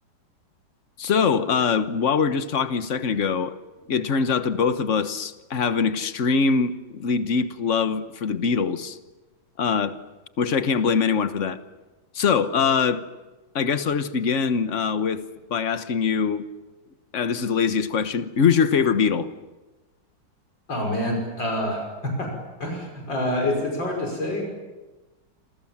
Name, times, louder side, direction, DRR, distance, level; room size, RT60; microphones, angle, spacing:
voice 1, 1.0-3.6 3.9-9.0 9.6-10.0 10.4-11.6 12.1-13.0 13.5-15.2 15.5-16.4 17.1-19.3, left 6 dB, 40° left, 1.3 m, -23 dB
voice 2, 20.7-22.3 22.6-24.6, left 1 dB, 60° left, 6.5 m, -27 dB
28.5 x 27.0 x 7.4 m
omnidirectional pair, 2.3 m